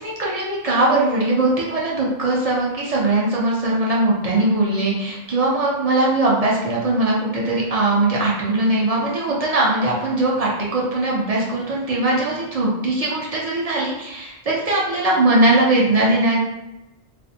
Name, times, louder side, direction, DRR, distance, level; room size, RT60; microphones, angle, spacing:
voice 1, 0.0-16.4, right 2 dB, 45° right, -4 dB, 0.5 m, -20 dB
2.4 x 2.0 x 2.6 m, 0.96 s
omnidirectional pair, 1.1 m